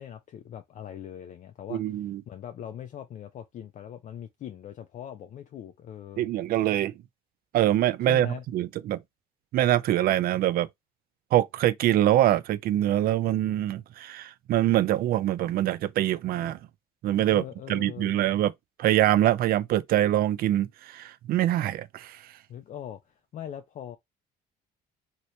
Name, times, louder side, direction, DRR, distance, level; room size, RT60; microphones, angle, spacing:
voice 1, 0.0-6.3 8.1-8.4 17.3-18.3 22.5-24.0, left 10 dB, 50° left, 0.4 m, -41 dB
voice 2, 1.7-2.2 6.2-6.9 7.5-9.0 9.5-10.7 11.3-16.6 17.0-17.4 17.7-18.5 18.8-22.2, right 13 dB, 60° right, 0.4 m, -24 dB
2.8 x 2.7 x 3.1 m
cardioid pair, 110°, 17 cm